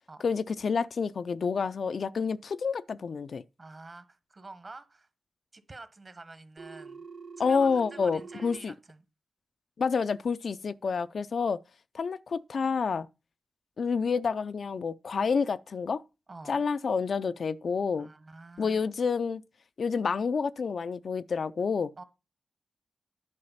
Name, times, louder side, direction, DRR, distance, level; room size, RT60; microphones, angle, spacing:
voice 1, 0.2-3.4 7.4-8.7 9.8-11.6 11.9-13.1 13.8-16.0 16.5-18.1 18.6-19.4 19.8-21.9, left 5 dB, 70° left, 0.4 m, -29 dB
voice 2, 3.6-5.1 5.5-7.0 7.4-9.0 16.3-16.6 18.0-18.8 22.0-22.1, right 3 dB, 40° right, 1.3 m, -48 dB
Telephone, 6.6-8.6, right 5 dB, 60° right, 1.6 m, -45 dB
9.8 x 4.9 x 5.6 m
cardioid pair, 75°, 0 cm